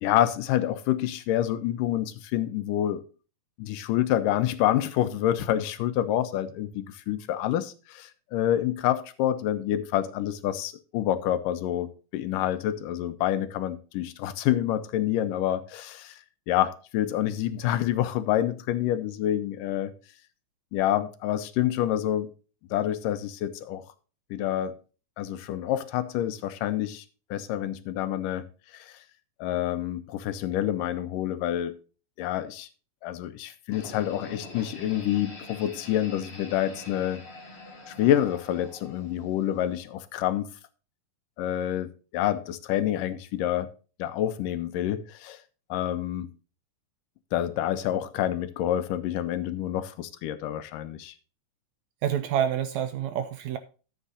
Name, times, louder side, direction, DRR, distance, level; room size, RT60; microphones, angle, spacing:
voice 1, 0.0-3.0 3.6-16.2 16.5-19.9 20.7-22.3 22.7-23.8 24.3-24.7 25.2-27.0 27.3-28.5 28.7-29.0 29.4-31.8 32.2-32.7 33.0-37.2 37.9-40.5 41.4-43.7 44.0-45.4 45.7-46.3 47.3-51.1, left 12 dB, 85° left, 12 dB, 2.5 m, -27 dB
sound 1, 33.7-39.8, left 2 dB, 20° left, 2.2 m, -44 dB
voice 2, 52.0-53.6, right 9 dB, 80° right, 10 dB, 1.7 m, -27 dB
13.5 x 8.6 x 2.7 m, 0.36 s
omnidirectional pair, 3.8 m